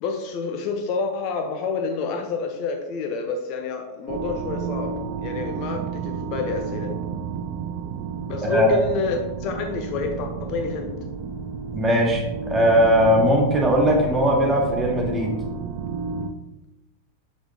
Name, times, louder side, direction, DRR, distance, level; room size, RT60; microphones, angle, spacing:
voice 1, 0.0-6.9 8.3-10.9, left 4 dB, 40° left, 4 dB, 0.8 m, -29 dB
sound 1, 4.1-16.3, right 6 dB, 45° right, 0.6 m, -31 dB
voice 2, 8.4-8.8 11.7-15.4, equal, 15° right, -1 dB, 1.8 m, -19 dB
6.9 x 6.8 x 2.8 m, 0.98 s
figure-of-eight pair, 90°, 0 cm